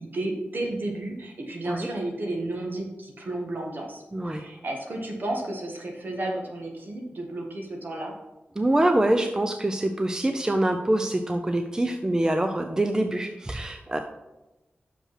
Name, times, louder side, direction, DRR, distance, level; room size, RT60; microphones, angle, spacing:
voice 1, 0.0-8.1, right 1 dB, 55° right, 1 dB, 1.6 m, -32 dB
voice 2, 4.1-4.4 8.6-14.0, right 1 dB, 20° right, 6 dB, 0.5 m, -25 dB
6.2 x 5.4 x 5.8 m, 1.0 s
wide cardioid pair, 125°, 4 cm